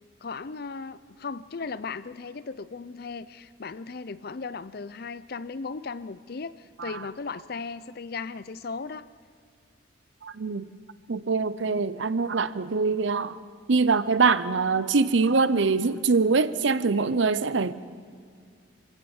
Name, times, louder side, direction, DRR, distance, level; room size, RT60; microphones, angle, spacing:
voice 1, 0.2-9.1 11.4-11.5, left 4 dB, 50° left, 0.5 m, -37 dB
voice 2, 10.2-10.7 11.1-13.4 13.7-17.7, right 4 dB, 70° right, 0.7 m, -23 dB
24.0 x 16.5 x 7.2 m
head